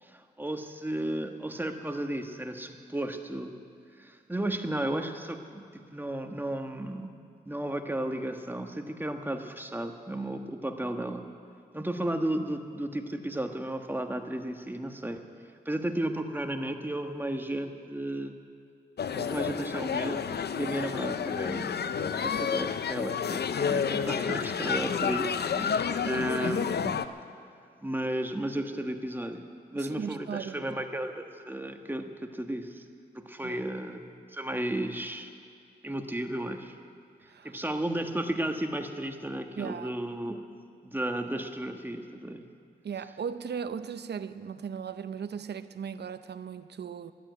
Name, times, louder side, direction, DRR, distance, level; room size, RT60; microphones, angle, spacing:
voice 1, 0.0-3.5 4.0-7.1 7.5-11.2 11.7-15.2 15.6-18.4 19.2-21.7 22.0-27.0 27.8-29.4 29.7-32.8 33.1-34.0 34.3-35.3 35.8-36.8 37.4-40.4 40.8-42.4, right 1 dB, 10° right, 1.4 m, -34 dB
sound 1, 19.0-27.1, left 7 dB, 65° left, 0.6 m, -30 dB
voice 2, 29.7-30.6 33.4-33.6 37.3-37.6 39.6-39.9 42.8-47.1, right 7 dB, 70° right, 0.7 m, -37 dB
13.0 x 12.0 x 9.3 m
cardioid pair, 60°, 18 cm